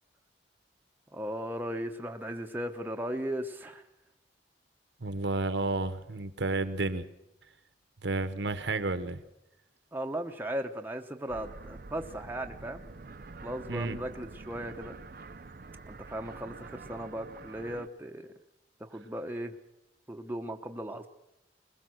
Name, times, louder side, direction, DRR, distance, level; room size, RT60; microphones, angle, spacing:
voice 1, 1.1-3.8 9.9-12.8 13.4-15.0 15.9-18.3 18.8-19.5 20.1-21.1, right 1 dB, 10° right, 4 dB, 0.9 m, -37 dB
voice 2, 5.0-7.0 8.0-9.2 13.7-14.0, right 3 dB, 75° right, 11 dB, 1.0 m, -31 dB
sound 1, 11.3-17.9, right 3 dB, 55° right, 0.6 m, -47 dB
21.0 x 20.5 x 6.4 m, 0.89 s
head